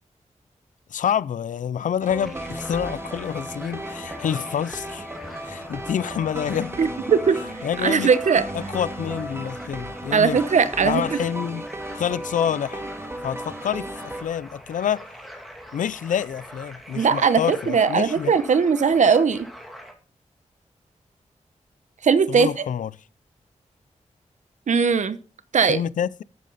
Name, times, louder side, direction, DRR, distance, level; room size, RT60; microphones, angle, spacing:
voice 1, 0.9-5.1 5.4-6.7 7.6-8.1 8.5-10.4 10.8-11.6 11.9-12.8 13.2-15.0 15.7-18.4 22.3-22.9 25.7-26.2, left 9 dB, 90° left, 0.5 m, -27 dB
sound 1, 2.0-14.2, right 1 dB, 20° right, 1.8 m, -35 dB
sound 2, 2.2-19.9, equal, ahead, 2.5 m, -43 dB
voice 2, 6.8-8.4 10.1-11.2 16.9-19.5 22.0-22.5 24.7-25.2 25.5-25.8, right 6 dB, 70° right, 1.0 m, -19 dB
12.5 x 9.3 x 4.0 m
wide cardioid pair, 95°, 13 cm